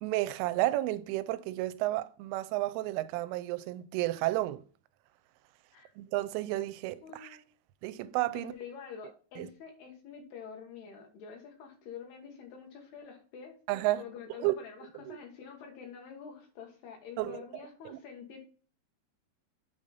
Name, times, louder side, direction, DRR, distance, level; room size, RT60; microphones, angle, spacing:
voice 1, 0.0-4.6 6.0-7.4 7.8-8.5 9.4-9.5 13.7-14.0 14.4-14.6 15.1-15.2 17.2-17.4 17.9-18.0, right 17 dB, 85° right, 3.0 m, -32 dB
voice 2, 7.0-7.5 8.3-13.6 14.0-18.4, left 6 dB, 65° left, 3.0 m, -47 dB
8.4 x 5.0 x 4.1 m
omnidirectional pair, 5.6 m